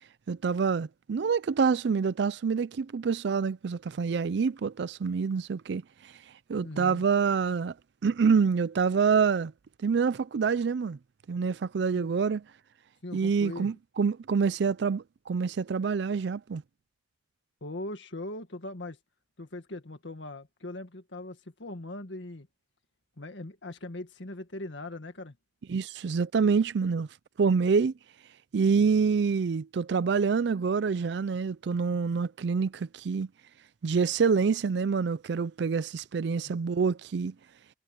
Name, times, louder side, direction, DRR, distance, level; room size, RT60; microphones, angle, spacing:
voice 1, 0.3-6.2 6.5-7.7 8.0-9.5 9.8-11.0 11.3-12.4 13.1-16.6 25.7-27.1 27.4-27.9 28.5-33.3 33.8-37.3, right 5 dB, 65° right, 0.4 m, -26 dB
voice 2, 6.6-7.0 11.9-12.1 13.0-13.7 17.6-19.0 19.4-22.5 23.2-25.4 36.4-36.6, left 2 dB, 90° left, 1.8 m, -40 dB
head